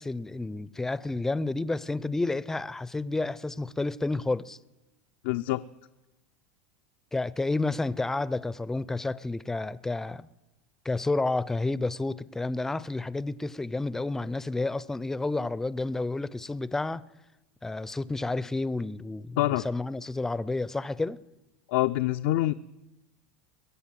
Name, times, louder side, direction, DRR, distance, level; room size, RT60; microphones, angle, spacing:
voice 1, 0.0-4.6 7.1-10.3 10.8-17.0 17.6-19.4 19.6-21.2, left 2 dB, 10° left, 0.5 m, -30 dB
voice 2, 5.2-5.6 19.4-19.7 21.7-22.5, left 16 dB, 70° left, 0.5 m, -25 dB
22.0 x 8.3 x 7.5 m
supercardioid pair, 120°, 5 cm